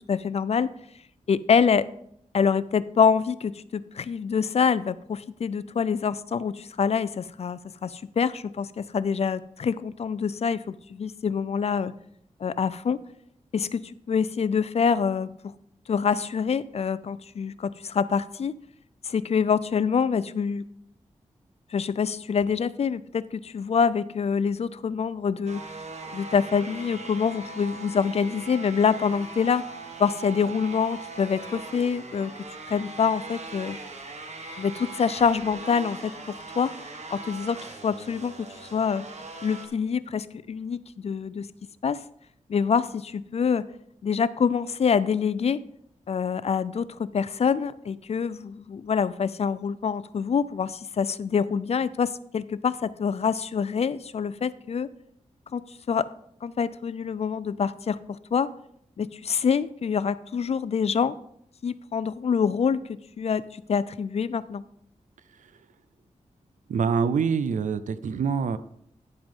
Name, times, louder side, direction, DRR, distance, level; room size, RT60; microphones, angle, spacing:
voice 1, 0.1-0.7 1.3-1.9 2.3-11.9 12.4-13.0 13.5-15.3 15.9-18.6 19.0-20.7 21.7-25.6 26.1-29.7 30.0-32.3 32.7-33.8 34.6-36.7 37.1-39.0 39.4-41.5 41.8-42.0 42.5-43.6 44.0-45.6 46.1-54.9 55.5-56.1 56.4-58.5 59.0-61.2 61.6-62.8 63.2-64.6, left 6 dB, 55° left, 16 dB, 0.4 m, -26 dB
sound 1, 25.5-39.7, right 3 dB, 65° right, 1.3 m, -40 dB
voice 2, 66.7-68.6, right 6 dB, 85° right, 14 dB, 0.5 m, -25 dB
10.5 x 7.8 x 3.7 m, 0.71 s
wide cardioid pair, 85°, 13 cm